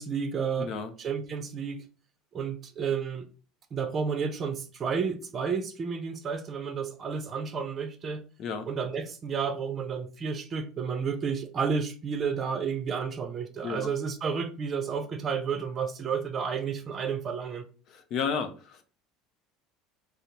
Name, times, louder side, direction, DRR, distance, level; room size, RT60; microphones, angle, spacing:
voice 1, 0.0-0.7 1.0-1.8 2.3-3.3 3.7-8.2 8.7-17.7, right 6 dB, 35° right, 0.6 m, -31 dB
voice 2, 0.6-0.9 8.4-8.6 13.6-13.9 17.9-18.9, left 6 dB, 55° left, 0.6 m, -32 dB
5.0 x 2.0 x 2.8 m
supercardioid pair, 110°, 0 cm